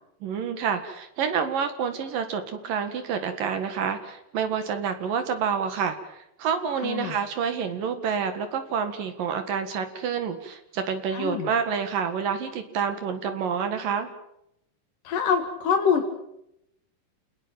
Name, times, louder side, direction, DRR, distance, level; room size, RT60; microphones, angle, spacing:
voice 1, 0.2-14.1, right 7 dB, 70° right, 8 dB, 3.4 m, -28 dB
voice 2, 6.8-7.1 11.1-11.5 15.1-16.1, left 6 dB, 65° left, 3 dB, 3.5 m, -25 dB
29.0 x 20.0 x 7.5 m, 0.80 s
omnidirectional pair, 4.1 m